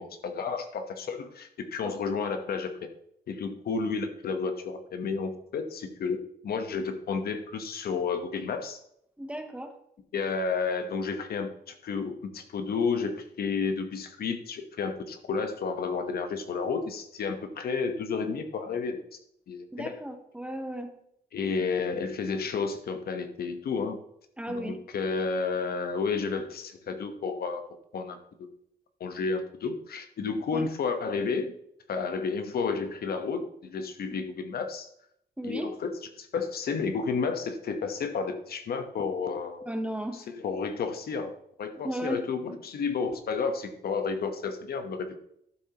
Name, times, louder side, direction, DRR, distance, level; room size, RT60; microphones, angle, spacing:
voice 1, 0.0-2.9 3.3-8.8 10.1-19.0 19.5-19.9 21.3-24.0 24.5-27.6 27.9-28.5 29.0-31.5 31.9-34.9 35.4-39.6 40.1-41.3 41.6-45.2, left 5 dB, 65° left, 7 dB, 1.1 m, -31 dB
voice 2, 9.2-9.7 19.7-20.9 24.4-24.8 30.5-30.7 34.1-34.2 35.4-35.7 39.7-40.2 41.8-42.2, right 1 dB, 5° right, 6 dB, 0.9 m, -35 dB
12.0 x 7.1 x 2.9 m, 0.71 s
wide cardioid pair, 160°, 17 cm